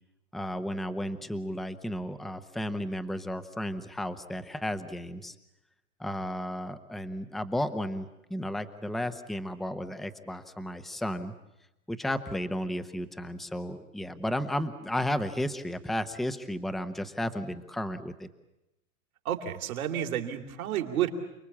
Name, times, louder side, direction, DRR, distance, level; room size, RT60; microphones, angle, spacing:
voice 1, 0.3-5.3 6.0-11.3 11.9-18.3, equal, ahead, 10 dB, 0.9 m, -33 dB
voice 2, 19.2-21.1, right 11 dB, 75° right, 4 dB, 3.0 m, -30 dB
29.0 x 20.0 x 8.6 m, 0.93 s
hypercardioid pair, 130°, 43 cm